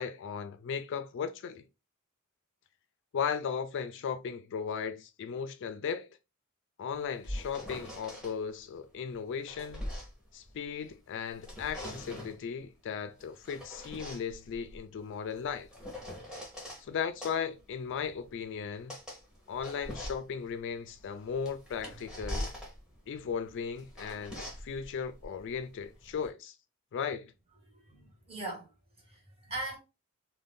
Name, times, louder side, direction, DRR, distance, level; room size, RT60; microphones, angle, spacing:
voice 1, 0.0-1.6 3.1-6.1 6.8-9.8 10.3-15.7 16.8-19.0 19.5-22.5 23.1-26.5 26.9-27.3, left 6 dB, 60° left, 0.3 m, -36 dB
sound 1, 6.9-8.3 9.1-10.9 11.3-12.4 13.2-16.8 17.2-26.3, left 1 dB, 5° right, 0.9 m, -43 dB
voice 2, 27.7-28.7 29.0-29.8, right 2 dB, 25° right, 1.3 m, -40 dB
2.6 x 2.1 x 3.4 m
head